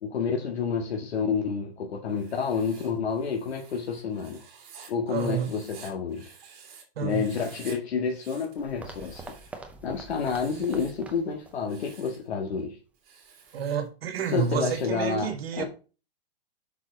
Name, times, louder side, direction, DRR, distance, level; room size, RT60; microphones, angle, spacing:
voice 1, 0.0-4.4 4.9-6.3 7.0-9.4 9.8-12.8 14.3-15.6, left 5 dB, 85° left, 1.8 m, -29 dB
Writing, 2.1-6.8 7.1-7.8 8.1-9.6 10.1-11.0 11.5-12.2 12.9-14.9, right 6 dB, 35° right, 3.0 m, -51 dB
voice 2, 5.1-5.5 7.0-7.2 13.5-15.6, right 8 dB, 70° right, 1.8 m, -29 dB
sound 1, 8.6-11.6 11.9-12.0 12.6-12.7, right 3 dB, 5° right, 0.6 m, -44 dB
7.3 x 6.0 x 4.0 m
hypercardioid pair, 150°, 31 cm